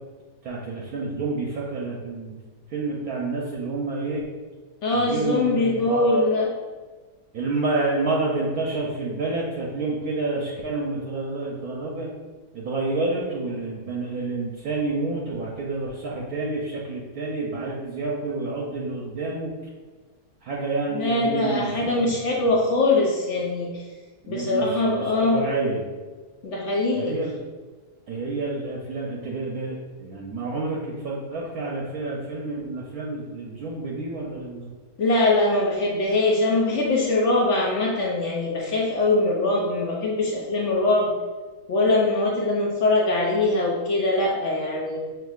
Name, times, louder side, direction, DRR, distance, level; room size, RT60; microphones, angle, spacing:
voice 1, 0.4-2.3 2.7-4.3 4.9-6.2 7.3-12.1 12.5-19.5 20.4-22.1 24.2-25.8 26.9-27.4 28.1-34.8, right 3 dB, 70° right, -3 dB, 1.0 m, -29 dB
voice 2, 4.8-6.5 20.9-23.8 24.3-25.4 26.4-27.1 35.0-41.1 41.7-45.0, left 2 dB, 65° left, -2 dB, 0.7 m, -22 dB
5.7 x 3.0 x 2.3 m, 1.4 s
omnidirectional pair, 1.8 m